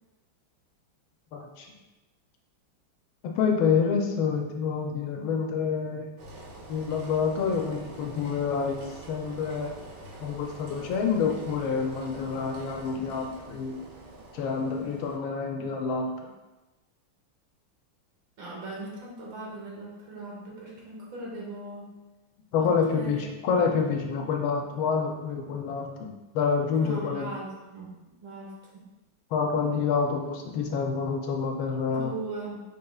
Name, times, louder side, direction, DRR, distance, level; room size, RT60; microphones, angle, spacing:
voice 1, 1.3-1.7 3.2-6.1 6.7-9.7 10.2-13.8 14.3-16.3 22.5-27.3 29.3-32.1, left 5 dB, 80° left, 2 dB, 1.3 m, -28 dB
Engine, 6.2-15.2, right 2 dB, 90° right, 1.7 m, -45 dB
voice 2, 18.4-21.9 22.6-23.3 23.8-24.0 26.7-28.0 28.2-28.9 31.9-32.6, right 2 dB, 65° right, -4 dB, 1.7 m, -39 dB
5.5 x 3.3 x 2.3 m, 1.1 s
omnidirectional pair, 2.3 m